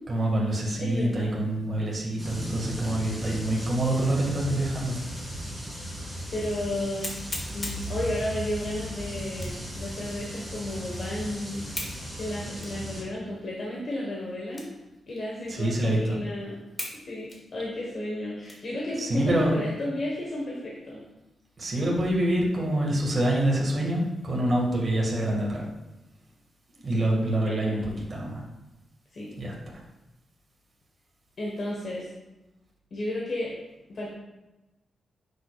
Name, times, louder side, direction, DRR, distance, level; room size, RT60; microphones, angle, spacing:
voice 1, 0.1-5.0 15.5-16.2 19.0-19.5 21.6-25.7 26.8-28.4 29.4-29.8, right 1 dB, 30° right, -2 dB, 2.0 m, -26 dB
voice 2, 0.8-1.3 3.1-3.2 4.0-4.2 6.3-7.1 7.4-11.8 12.1-14.6 15.1-16.5 17.1-21.0 26.9-27.1 27.4-27.8 29.1-29.3 31.4-32.1 32.9-33.5 33.9-34.1, left 1 dB, 45° left, -3 dB, 1.4 m, -33 dB
sound 1, 2.2-13.0, equal, ahead, 2.5 m, -37 dB
sound 2, 5.6-5.7 6.3-6.4 7.0-7.9 9.3-9.7 10.2-10.3 11.7-12.0 12.6-12.8 13.4-13.5 14.5-14.8 15.2-15.3 15.9-16.0 16.8-17.0 17.3-18.8 19.3-19.4 19.9-20.4, left 1 dB, 25° left, 1.5 m, -38 dB
9.6 x 6.9 x 2.5 m, 1.0 s
wide cardioid pair, 145°, 0 cm